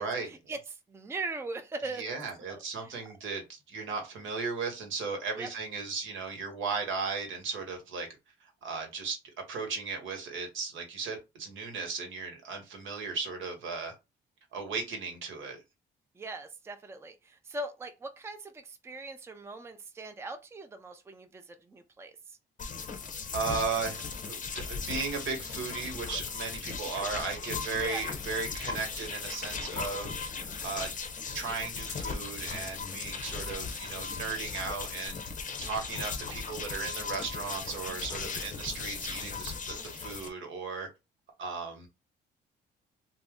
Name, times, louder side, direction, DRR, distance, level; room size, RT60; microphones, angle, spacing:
voice 1, 0.0-2.1 2.5-2.9 5.4-5.5 16.2-22.4 27.8-28.0, right 2 dB, 15° right, 0.4 m, -40 dB
voice 2, 1.9-8.1 8.6-9.2 9.5-13.9 14.5-15.6 23.3-30.9 31.3-35.2 35.6-40.9 41.4-41.9, right 4 dB, 75° right, 1.0 m, -36 dB
sound 1, 22.6-40.3, left 5 dB, 40° left, 0.6 m, -37 dB
2.6 x 2.0 x 3.5 m
cardioid pair, 90°, 20 cm